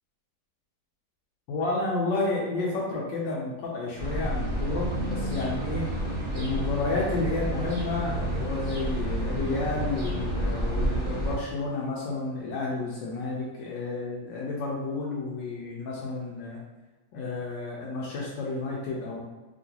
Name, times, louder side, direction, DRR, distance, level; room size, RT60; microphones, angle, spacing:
voice 1, 1.5-5.9 6.3-16.6 17.1-19.2, left 3 dB, 75° left, -3 dB, 1.1 m, -31 dB
sound 1, 4.0-11.4, right 1 dB, 75° right, 0.5 m, -30 dB
3.0 x 2.9 x 2.8 m, 1.2 s
omnidirectional pair, 2.2 m